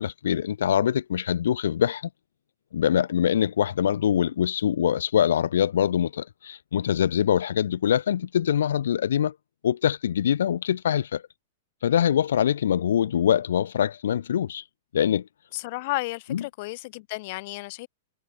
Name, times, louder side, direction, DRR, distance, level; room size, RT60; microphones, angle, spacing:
voice 1, 0.0-2.0 2.7-9.3 9.6-11.2 11.8-14.6 14.9-15.3 16.3-16.4, left 9 dB, 70° left, 1.8 m, -24 dB
voice 2, 15.5-17.9, left 23 dB, 50° left, 5.0 m, -33 dB
hypercardioid pair, 110°, 0 cm